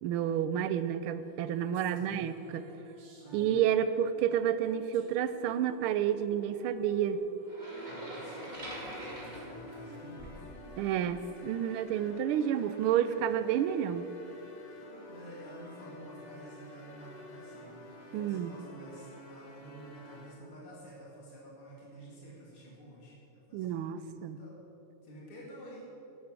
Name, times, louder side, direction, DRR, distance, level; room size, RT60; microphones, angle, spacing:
voice 1, 0.0-2.6 3.3-7.2 10.8-14.1 18.1-18.5 23.5-24.4, right 9 dB, 85° right, 13 dB, 1.5 m, -30 dB
sound 1, 1.2-14.9, right 1 dB, 60° right, 2.3 m, -50 dB
voice 2, 1.9-2.3 3.2-3.5 7.9-10.5 14.9-24.6 25.0-25.9, right 1 dB, 80° left, -5 dB, 3.2 m, -50 dB
sound 2, 7.5-10.5, right 1 dB, 20° right, 2.5 m, -44 dB
sound 3, 7.9-20.6, left 2 dB, 35° left, 0.7 m, -50 dB
11.0 x 10.0 x 6.2 m, 3.0 s
omnidirectional pair, 2.3 m